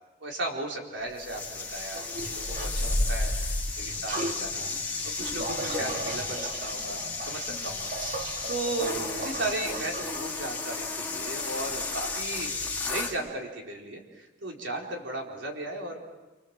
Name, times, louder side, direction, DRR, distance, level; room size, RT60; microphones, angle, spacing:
voice 1, 0.2-12.5 12.8-16.0, right 2 dB, 70° right, 1 dB, 4.4 m, -36 dB
sound 1, 1.2-13.2, left 3 dB, 10° left, 3.0 m, -33 dB
sound 2, 1.9-2.7 4.1-4.4 5.4-10.2, right 2 dB, 45° right, 2.6 m, -37 dB
28.5 x 25.5 x 7.5 m, 1.2 s
head